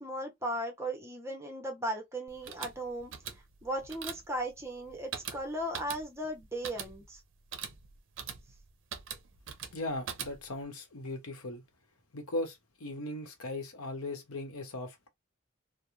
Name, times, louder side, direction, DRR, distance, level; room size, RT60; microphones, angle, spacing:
voice 1, 0.0-3.1 3.6-7.2, right 1 dB, 10° right, 0.7 m, -37 dB
sound 1, 2.3-10.6, right 7 dB, 60° right, 0.5 m, -43 dB
voice 2, 9.7-11.6 12.1-15.1, left 2 dB, 85° left, 0.8 m, -38 dB
2.4 x 2.0 x 3.0 m
head